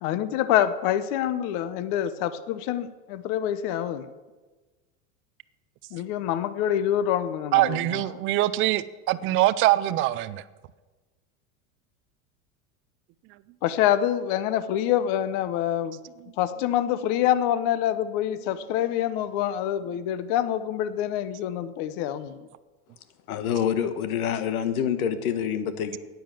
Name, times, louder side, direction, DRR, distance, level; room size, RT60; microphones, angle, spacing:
voice 1, 0.0-4.1 5.9-8.0 13.6-16.0 16.4-22.4, left 11 dB, 50° left, 14 dB, 0.9 m, -26 dB
voice 2, 7.5-10.4, right 15 dB, 30° right, 16 dB, 0.4 m, -23 dB
voice 3, 23.3-26.0, left 8 dB, 85° left, 10 dB, 1.4 m, -26 dB
10.0 x 9.4 x 7.5 m, 1.3 s
supercardioid pair, 135°, 42 cm